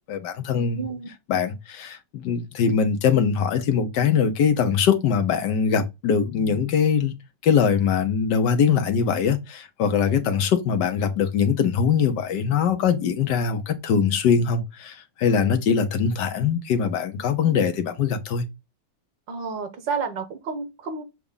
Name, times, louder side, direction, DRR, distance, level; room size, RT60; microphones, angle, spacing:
voice 1, 0.1-0.9 1.3-7.1 7.4-18.5, left 6 dB, 75° left, 1.5 m, -22 dB
voice 2, 0.8-1.1 19.3-21.0, right 5 dB, 85° right, 1.9 m, -30 dB
7.0 x 2.5 x 5.5 m
omnidirectional pair, 1.9 m